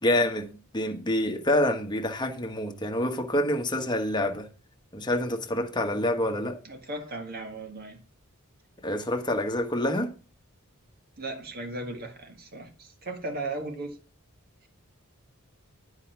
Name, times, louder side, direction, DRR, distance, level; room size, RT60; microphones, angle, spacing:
voice 1, 0.0-4.5 4.9-6.6 8.8-10.1, left 1 dB, 20° left, 1.2 m, -27 dB
voice 2, 6.6-8.0 11.2-14.0, right 2 dB, 45° right, 1.8 m, -36 dB
9.8 x 5.0 x 5.8 m
head